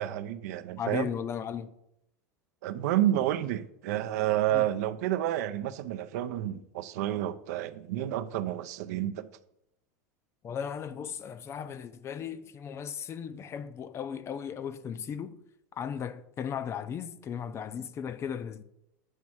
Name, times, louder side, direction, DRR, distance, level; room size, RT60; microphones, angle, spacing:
voice 1, 0.0-1.1 2.6-9.3, right 13 dB, 70° right, 0.5 m, -30 dB
voice 2, 0.8-1.7 4.5-4.6 10.4-15.4 15.7-18.6, left 8 dB, 30° left, 0.4 m, -36 dB
7.3 x 3.1 x 6.1 m
hypercardioid pair, 110°, 9 cm